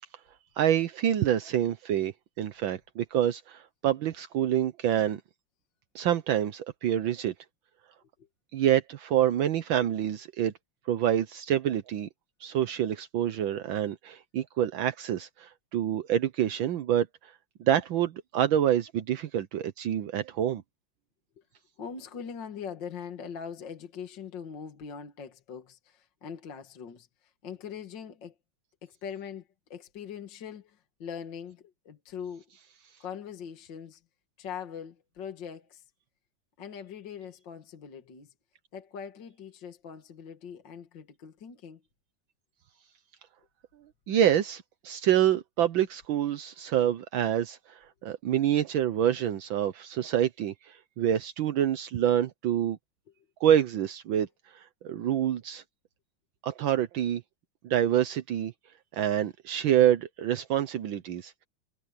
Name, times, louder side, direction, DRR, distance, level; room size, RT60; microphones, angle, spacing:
voice 1, 0.6-5.2 5.9-7.3 8.5-10.5 10.9-12.1 12.4-17.3 17.6-20.6 44.1-52.8 53.4-54.3 54.5-55.6 56.4-57.2 57.6-58.5 58.9-61.3, right 10 dB, 75° right, 1.6 m, -27 dB
voice 2, 21.8-28.3 28.8-32.4 33.0-34.0 34.4-35.9 36.6-38.3 38.7-41.8, left 7 dB, 60° left, 2.4 m, -42 dB
omnidirectional pair, 2.3 m